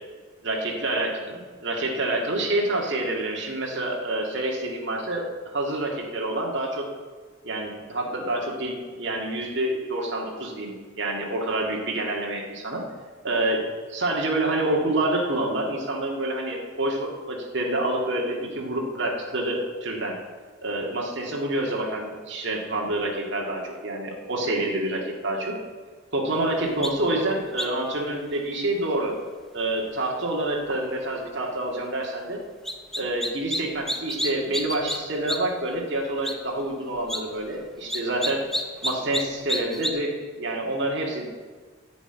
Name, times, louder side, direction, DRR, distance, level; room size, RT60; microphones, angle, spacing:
voice 1, 0.4-5.3 5.5-6.8 7.4-12.8 13.2-13.6 13.9-20.2 20.6-25.6 26.1-29.1 29.5-32.4 33.0-38.4 38.8-41.3, right 1 dB, 60° right, -1 dB, 1.8 m, -27 dB
sound 1, 26.8-26.9 27.6-27.9 32.6-33.6 33.9-35.0 35.3-35.4 35.7-35.8 36.2-36.3 37.0-37.2 37.9-39.2 39.5-39.9, left 1 dB, ahead, 0.6 m, -28 dB
9.9 x 6.3 x 8.9 m, 1.5 s
head